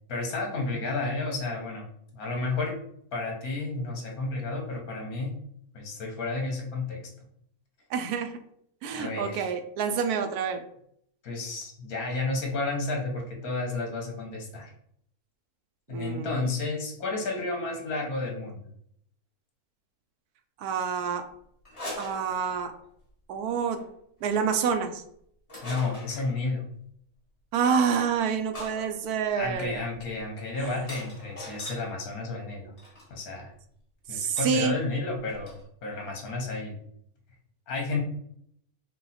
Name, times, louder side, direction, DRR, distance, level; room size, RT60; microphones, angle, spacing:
voice 1, 0.1-1.9 2.1-2.8 3.1-5.3 5.7-7.0 8.9-9.5 11.2-14.7 15.9-18.6 25.6-26.6 29.4-32.7 33.1-33.5 34.1-36.8 37.7-38.0, left 3 dB, 70° left, 0 dB, 1.6 m, -31 dB
voice 2, 7.9-8.4 8.8-10.6 15.9-16.5 20.6-21.2 22.0-22.7 23.3-23.8 24.2-25.0 27.5-29.7 30.6-30.7 34.1-34.8, right 6 dB, 85° right, 7 dB, 1.1 m, -27 dB
sound 1, 21.6-22.9 23.6-23.9 25.5-26.3 27.8-27.9 28.5-31.9 32.8-33.1 34.4-34.6 34.8-34.9 35.2-35.6, left 1 dB, 25° left, 1.5 m, -42 dB
4.7 x 2.3 x 4.1 m, 0.70 s
omnidirectional pair, 1.6 m